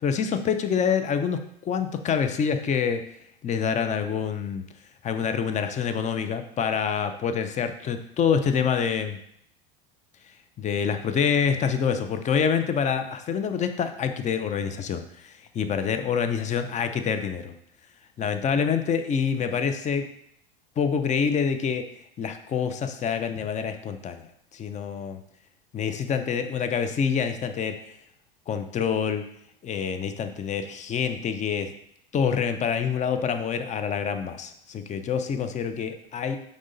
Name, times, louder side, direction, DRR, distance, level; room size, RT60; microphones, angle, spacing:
voice 1, 0.0-3.0 3.4-4.6 5.0-9.2 10.6-17.5 18.2-20.1 20.8-21.9 22.2-24.3 24.5-25.2 25.7-27.8 28.5-29.2 29.6-31.7 32.1-36.4, left 7 dB, 25° left, 8 dB, 0.7 m, -26 dB
6.3 x 4.9 x 4.0 m, 0.72 s
hypercardioid pair, 85°, 29 cm